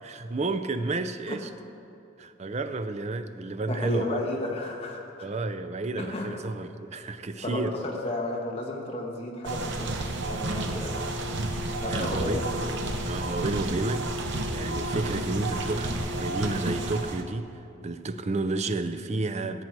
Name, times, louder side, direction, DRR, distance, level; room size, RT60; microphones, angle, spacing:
voice 1, 0.0-1.5 2.2-4.2 5.2-7.8 10.5-10.8 11.9-12.4 13.1-19.6, right 2 dB, 30° right, 10 dB, 0.4 m, -31 dB
voice 2, 3.7-5.0 6.0-6.3 7.3-7.6 8.0-9.9 10.3-11.0 11.8-12.7, left 1 dB, 30° left, -1 dB, 1.5 m, -33 dB
sound 1, 9.4-17.2, right 1 dB, 55° right, 0.9 m, -31 dB
15.0 x 8.3 x 4.7 m, 2.9 s
head